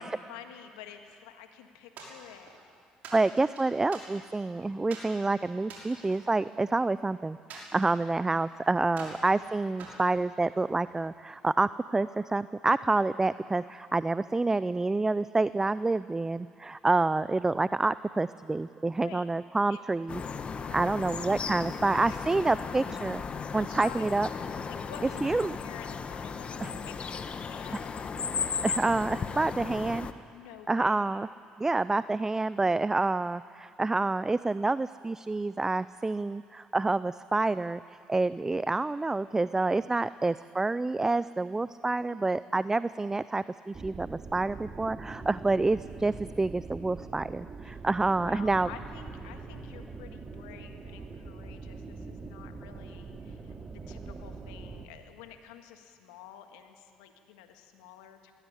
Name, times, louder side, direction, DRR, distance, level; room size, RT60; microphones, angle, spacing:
voice 1, 0.0-2.6 19.0-19.3 19.7-19.8 20.6-21.0 21.8-22.2 23.5-24.1 24.7-28.1 30.3-31.2 42.0-42.4 47.6-47.8 48.2-58.3, left 9 dB, 90° left, 6 dB, 1.7 m, -49 dB
sound 1, 2.0-2.6 3.0-4.4 4.9-5.1 5.6-7.0 7.5-8.5 8.9-9.3 9.8-10.8, right 3 dB, 65° right, 5.9 m, -46 dB
voice 2, 3.1-20.2 20.7-23.2 23.5-24.3 25.2-25.6 26.6-26.7 28.6-30.1 30.7-31.3 31.6-48.7, right 3 dB, 15° right, 16 dB, 0.4 m, -28 dB
sound 2, 20.1-30.1, left 5 dB, 40° left, 1.2 m, -36 dB
sound 3, 43.7-54.9, right 4 dB, 35° right, 2.4 m, -43 dB
19.5 x 16.0 x 9.8 m, 2.3 s
supercardioid pair, 70°, 3 cm